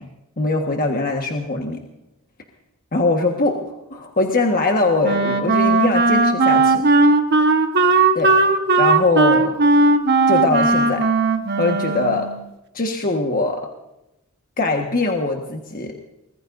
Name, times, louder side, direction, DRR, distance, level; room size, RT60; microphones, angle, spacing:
voice 1, 0.4-1.8 2.9-6.8 8.1-8.3 8.8-9.6 10.3-11.0 11.6-12.3 12.7-13.7 14.6-15.9, left 2 dB, 40° left, 2 dB, 1.5 m, -21 dB
Wind instrument woodwind instrument, 5.0-12.4, right 3 dB, 50° right, 1.3 m, -17 dB
24.5 x 20.5 x 2.7 m, 0.93 s
head